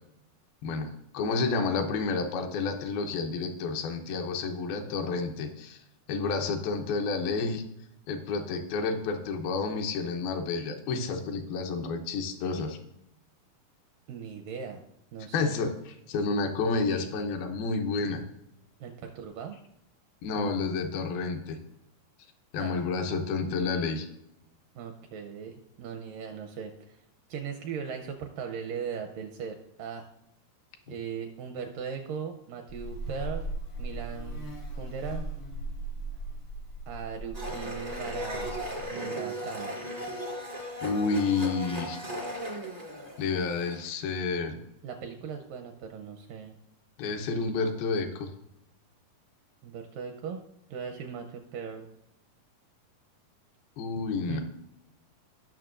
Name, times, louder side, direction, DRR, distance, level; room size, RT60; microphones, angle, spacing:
voice 1, 0.6-5.8 6.1-7.6 8.1-12.8 15.3-18.2 20.2-21.6 22.5-24.1 40.8-42.0 43.2-44.6 47.0-48.3 53.8-54.4, left 4 dB, 80° left, 4 dB, 2.6 m, -30 dB
voice 2, 14.1-14.8 15.1-15.5 18.8-19.6 20.4-20.8 22.6-22.8 24.8-27.0 27.3-30.1 30.9-33.4 33.8-34.4 34.8-35.3 36.9-38.5 38.9-39.7 44.8-46.6 49.6-50.4 50.7-51.9 54.3-54.4, right 7 dB, 80° right, 4 dB, 2.0 m, -38 dB
Buzz, 32.7-38.8, right 1 dB, 60° left, 0.8 m, -38 dB
Domestic sounds home sounds, 37.3-43.9, equal, 35° right, 0.6 m, -37 dB
18.0 x 6.3 x 2.5 m, 0.81 s
omnidirectional pair, 4.5 m